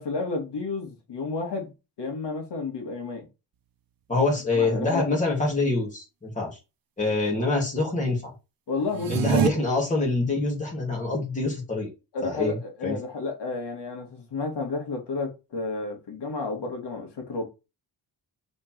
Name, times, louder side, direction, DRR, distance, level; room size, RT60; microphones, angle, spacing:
voice 1, 0.0-1.7 2.0-3.3 4.5-5.1 8.7-9.5 12.1-17.4, left 3 dB, 75° left, 2.2 m, -31 dB
voice 2, 4.1-6.6 7.0-8.3 9.1-11.9 12.2-12.5 12.8-13.0, left 3 dB, 20° left, 2.8 m, -25 dB
sound 1, 8.9-9.5, right 12 dB, 55° right, 0.8 m, -24 dB
5.3 x 4.3 x 4.5 m
wide cardioid pair, 155°, 41 cm